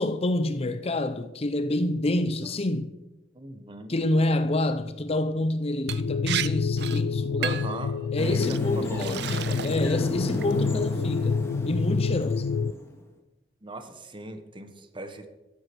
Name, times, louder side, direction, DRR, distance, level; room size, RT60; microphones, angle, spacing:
voice 1, 0.0-2.9 3.9-7.7 8.1-11.4 11.7-12.5, left 1 dB, 35° left, 0.6 m, -28 dB
voice 2, 3.3-4.0 7.4-9.2 10.5-11.0 13.6-15.3, right 2 dB, 30° right, 1.3 m, -39 dB
sound 1, 5.9-12.7, left 5 dB, 75° left, 0.4 m, -28 dB
Liquid, 5.9-6.0 6.3-6.5 6.8-7.0 7.4-7.8 8.4-8.6 9.0-9.9 10.3-10.7, right 10 dB, 65° right, 0.6 m, -32 dB
sound 2, 8.2-13.0, equal, 15° left, 1.8 m, -35 dB
14.0 x 8.2 x 6.1 m
head